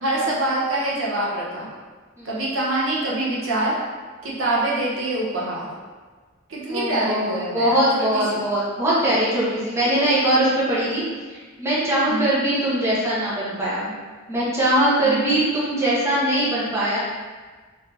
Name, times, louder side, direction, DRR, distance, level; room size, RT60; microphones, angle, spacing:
voice 1, 0.0-1.7 2.2-3.7 4.2-5.7 6.5-8.4 12.1-12.3 15.0-15.3, right 1 dB, 70° right, -6 dB, 0.9 m, -25 dB
voice 2, 6.7-11.0 11.3-14.0 14.3-17.0, right 1 dB, 15° right, -9 dB, 0.8 m, -21 dB
3.5 x 2.7 x 3.3 m, 1.4 s
head